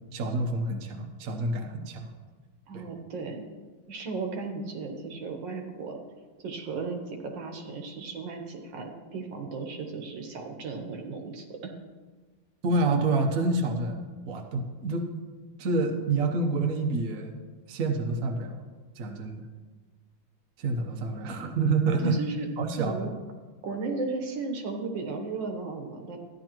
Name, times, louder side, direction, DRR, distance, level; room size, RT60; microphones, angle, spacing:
voice 1, 0.1-2.1 2.7-2.8 12.6-14.0 14.3-15.1 15.6-18.6 19.0-19.4 20.6-22.2 22.6-23.1, right 3 dB, 55° right, 3 dB, 1.2 m, -28 dB
voice 2, 2.7-3.5 3.9-6.0 6.4-11.7 22.0-22.5 22.7-23.1 23.6-26.2, right 4 dB, 75° right, 3 dB, 1.8 m, -35 dB
13.0 x 10.5 x 3.0 m, 1.3 s
omnidirectional pair, 2.1 m